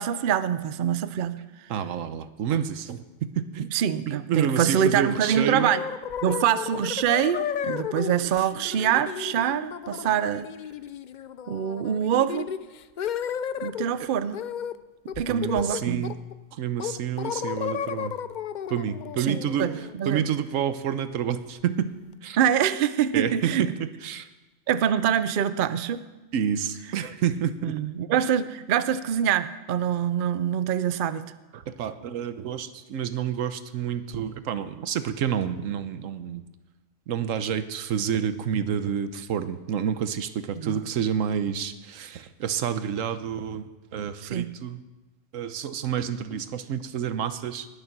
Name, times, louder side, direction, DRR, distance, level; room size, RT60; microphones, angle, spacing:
voice 1, 0.0-1.7 3.6-5.8 6.2-10.5 11.5-12.5 13.6-14.4 15.2-16.0 19.2-20.2 22.4-23.7 24.7-26.0 27.6-31.2 40.6-40.8 44.2-44.5, right 9 dB, 55° right, 13 dB, 0.6 m, -25 dB
voice 2, 1.7-3.7 4.1-5.7 14.0-14.1 15.2-16.2 16.5-18.2 18.7-19.7 20.0-21.9 22.2-22.4 23.1-24.3 26.3-27.7 31.5-36.4 37.1-44.8 45.3-47.7, right 8 dB, 85° right, 12 dB, 1.1 m, -29 dB
sound 1, 5.3-13.9 14.3-14.8 15.1-16.3 16.8-20.5, left 9 dB, 65° left, 0.4 m, -33 dB
20.0 x 6.7 x 6.0 m, 1.1 s
omnidirectional pair, 1.3 m